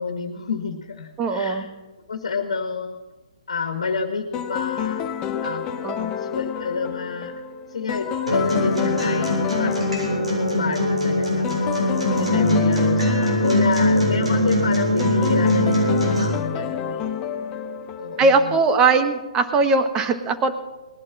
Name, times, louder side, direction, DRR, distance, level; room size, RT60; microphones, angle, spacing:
voice 1, 0.0-1.7 2.1-3.0 3.5-5.7 6.1-7.4 7.7-9.7 10.4-17.2 17.9-18.5, left 5 dB, 65° left, 4 dB, 1.8 m, -29 dB
voice 2, 1.2-1.7 5.8-6.1 12.0-12.3 18.2-20.6, right 3 dB, 20° right, 8 dB, 1.3 m, -20 dB
sound 1, 4.3-18.5, left 8 dB, 20° left, 0.8 m, -29 dB
Acoustic guitar, 8.3-16.2, left 1 dB, 90° right, 7.1 m, -21 dB
19.5 x 11.0 x 6.1 m, 1.2 s
figure-of-eight pair, 135°, 3 cm